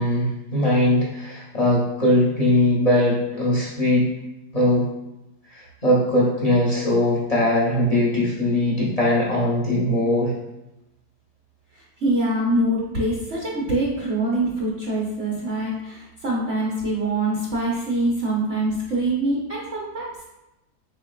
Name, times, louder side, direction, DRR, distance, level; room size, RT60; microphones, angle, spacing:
voice 1, 0.0-4.1 4.5-4.9 5.5-10.3, left 1 dB, 45° left, -6 dB, 0.5 m, -20 dB
voice 2, 12.0-20.2, right 1 dB, 50° right, -6 dB, 1.0 m, -24 dB
4.6 x 3.6 x 2.3 m, 0.95 s
omnidirectional pair, 1.8 m